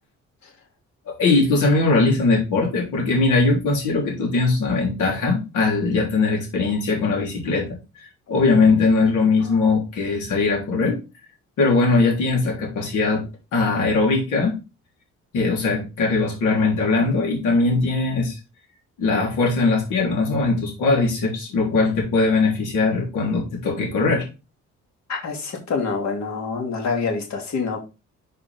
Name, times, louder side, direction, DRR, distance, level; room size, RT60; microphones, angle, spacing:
voice 1, 1.1-7.7 8.3-11.0 11.6-13.2 13.5-14.6 15.3-18.4 19.0-24.3, left 3 dB, 85° left, -1 dB, 3.5 m, -20 dB
voice 2, 25.1-27.8, left 4 dB, 65° left, 2 dB, 2.6 m, -26 dB
6.8 x 5.1 x 3.6 m, 0.27 s
cardioid pair, 90°, 30 cm